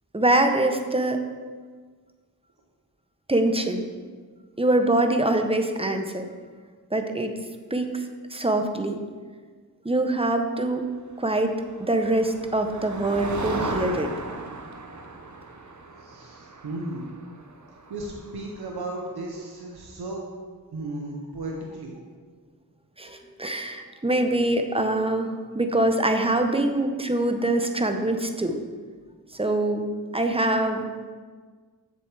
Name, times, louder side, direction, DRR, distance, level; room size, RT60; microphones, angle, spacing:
voice 1, 0.1-1.2 3.3-3.8 4.6-6.3 6.9-7.3 7.7-8.0 8.3-9.0 9.8-10.9 11.2-11.5 11.8-14.1 23.0-28.6 29.3-29.9 30.1-30.8, right 1 dB, 15° right, 5 dB, 0.7 m, -24 dB
Motor vehicle (road), 11.4-19.2, right 3 dB, 50° right, 0.7 m, -36 dB
voice 2, 16.0-17.1 17.9-20.2 20.7-21.9, right 2 dB, 85° right, 0 dB, 0.9 m, -35 dB
7.5 x 6.7 x 3.3 m, 1.5 s
cardioid pair, 45°, 37 cm